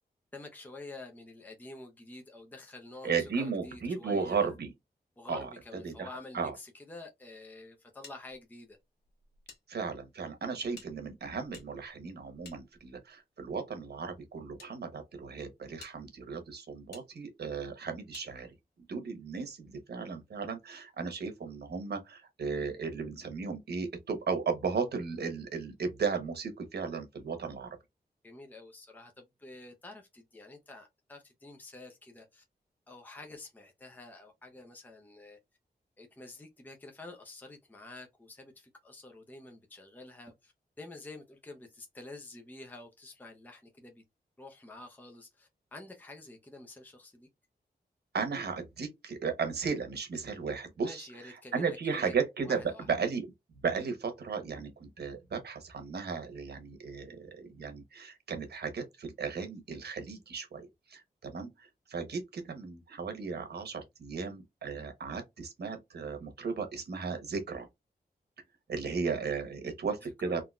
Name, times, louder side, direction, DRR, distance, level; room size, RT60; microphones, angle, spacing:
voice 1, 0.3-4.5 5.2-8.8 28.2-32.4 32.9-35.4 36.0-44.0 44.4-47.3 50.8-52.1 52.4-52.9 70.0-70.1, left 2 dB, 10° left, 0.6 m, -49 dB
voice 2, 3.0-4.7 5.3-5.5 5.8-6.1 6.3-6.5 9.7-18.5 18.9-27.8 48.1-53.3 53.6-67.7 68.7-70.4, right 5 dB, 85° right, 1.1 m, -35 dB
sound 1, 8.0-9.6 9.9-10.0 10.7-13.2 14.0-14.7 15.3-15.4 15.8-16.0 16.9-17.1 18.1-18.3, left 4 dB, 85° left, 1.3 m, -54 dB
3.7 x 2.7 x 2.3 m
wide cardioid pair, 160°, 17 cm